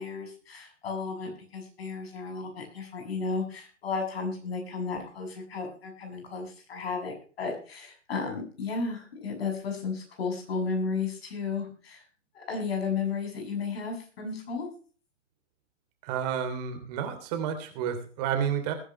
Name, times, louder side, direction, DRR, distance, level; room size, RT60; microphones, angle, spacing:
voice 1, 0.0-12.0 12.3-14.7, left 4 dB, 55° left, 3 dB, 7.6 m, -33 dB
voice 2, 16.0-18.7, right 8 dB, 30° right, 6 dB, 3.2 m, -30 dB
20.5 x 10.5 x 3.1 m, 0.39 s
figure-of-eight pair, 130°, 37 cm